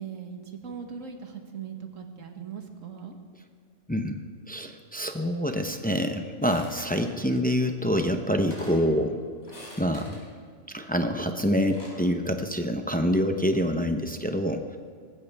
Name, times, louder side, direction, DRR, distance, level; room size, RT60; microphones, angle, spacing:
voice 1, 0.0-3.2 8.7-8.9, right 7 dB, 85° right, 4 dB, 1.8 m, -39 dB
voice 2, 4.5-9.2 9.8-10.2 10.7-14.8, equal, 10° left, 6 dB, 0.6 m, -26 dB
sound 1, 6.4-7.1 8.0-8.1 8.3-8.9 9.4-10.2 11.4-12.0, equal, 60° left, 4.5 m, -45 dB
19.0 x 15.5 x 3.5 m, 2.1 s
omnidirectional pair, 1.3 m